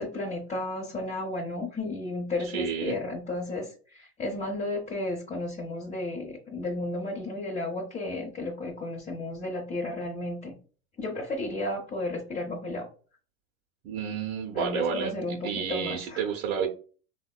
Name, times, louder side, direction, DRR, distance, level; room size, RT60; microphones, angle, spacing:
voice 1, 0.0-10.5 11.0-12.9 14.5-16.2, left 2 dB, 20° left, -3 dB, 0.8 m, -33 dB
voice 2, 2.5-3.0 13.8-16.7, right 7 dB, 50° right, -1 dB, 0.7 m, -30 dB
3.4 x 2.2 x 2.3 m, 0.38 s
hypercardioid pair, 100°, 41 cm